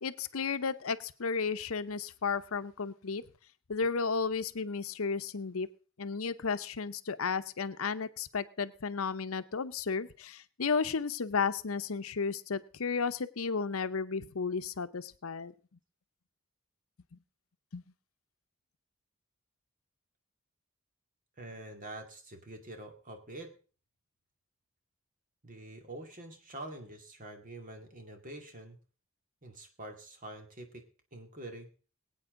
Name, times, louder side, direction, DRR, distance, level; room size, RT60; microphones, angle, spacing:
voice 1, 0.0-3.2 3.7-5.7 6.0-15.5 17.1-17.2 17.7-17.8, left 5 dB, 85° left, 12 dB, 0.8 m, -33 dB
voice 2, 21.4-23.5 25.4-28.8 29.4-30.8 31.1-31.7, right 1 dB, 40° right, 5 dB, 2.2 m, -46 dB
22.0 x 8.8 x 3.8 m, 0.37 s
head